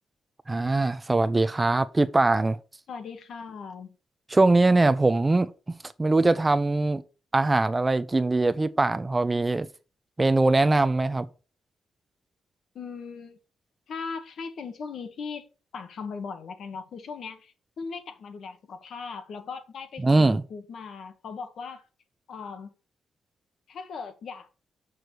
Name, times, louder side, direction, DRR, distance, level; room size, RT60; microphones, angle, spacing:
voice 1, 0.5-2.6 4.3-5.5 6.0-7.0 7.3-9.7 10.2-11.3 20.0-20.4, right 2 dB, 15° right, 0.4 m, -22 dB
voice 2, 2.9-4.0 12.7-13.4 13.9-15.5 15.7-21.8 22.3-22.7 23.7-24.5, left 5 dB, 60° left, 1.3 m, -38 dB
6.7 x 6.2 x 4.6 m
cardioid pair, 140°, 0 cm